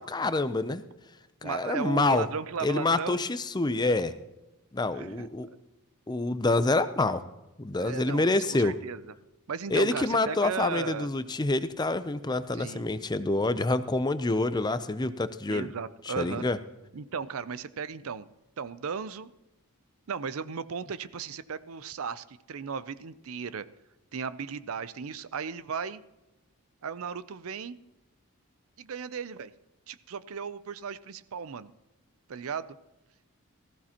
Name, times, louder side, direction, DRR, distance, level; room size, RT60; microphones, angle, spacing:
voice 1, 0.1-0.8 1.4-2.3 2.6-4.1 4.7-5.5 6.1-7.2 7.6-8.8 9.7-15.7 16.0-16.6, left 2 dB, 20° left, 13 dB, 0.5 m, -27 dB
voice 2, 1.4-3.2 4.9-5.3 7.8-9.0 9.5-11.1 12.5-12.9 15.5-16.4 16.9-18.3 18.6-19.3 20.1-23.7 24.1-26.0 26.8-27.8 28.8-29.5 29.9-31.7 32.3-32.8, right 6 dB, 70° right, 15 dB, 0.5 m, -36 dB
18.5 x 14.5 x 2.9 m, 1.0 s
head